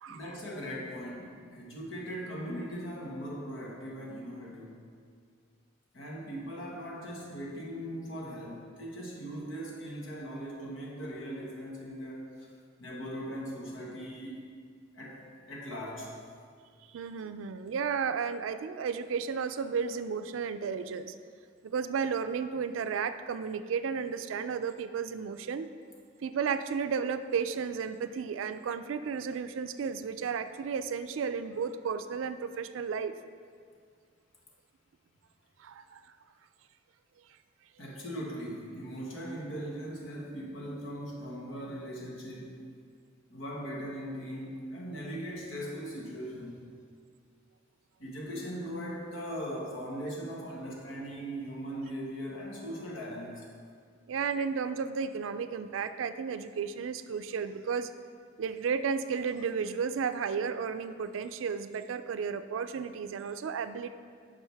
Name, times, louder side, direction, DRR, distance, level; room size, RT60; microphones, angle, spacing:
voice 1, 0.1-4.8 5.9-12.5 12.8-14.4 14.9-16.1 37.8-42.6 43.3-46.7 48.0-53.5, equal, 85° left, -2 dB, 1.4 m, -39 dB
voice 2, 16.9-21.1 21.6-25.7 26.2-33.1 35.6-36.0 54.1-57.9 58.4-63.9, right 6 dB, 85° right, 11 dB, 0.4 m, -33 dB
10.0 x 6.0 x 3.4 m, 2.1 s
head